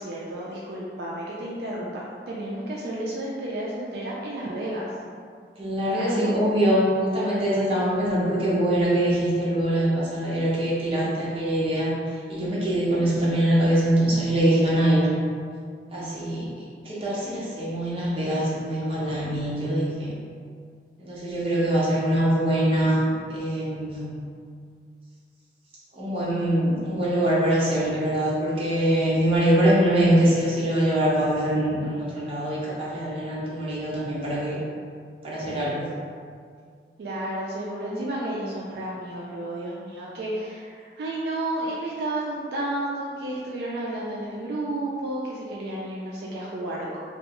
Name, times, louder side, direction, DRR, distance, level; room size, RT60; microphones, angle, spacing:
voice 1, 0.0-2.0 2.3-4.9 5.9-6.4 37.0-47.0, right 1 dB, 60° right, -5 dB, 0.3 m, -31 dB
voice 2, 5.6-15.1 15.9-16.5 16.8-20.2 21.0-24.2 25.9-34.6 35.2-35.8, right 1 dB, 30° right, -8 dB, 0.6 m, -23 dB
2.3 x 2.3 x 2.8 m, 2.1 s
head